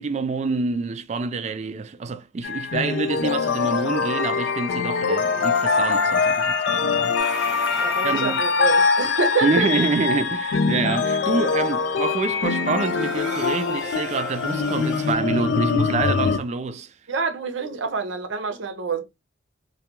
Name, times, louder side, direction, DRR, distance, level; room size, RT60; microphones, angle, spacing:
voice 1, 0.0-7.7 8.0-8.4 9.4-16.9, right 4 dB, 35° right, 0.3 m, -27 dB
sound 1, 2.4-16.4, left 5 dB, 65° left, 0.3 m, -23 dB
sound 2, 7.2-15.1, right 3 dB, 5° right, 0.9 m, -40 dB
voice 2, 7.8-9.9 17.1-19.1, right 4 dB, 75° right, 0.6 m, -26 dB
2.2 x 2.2 x 2.9 m
head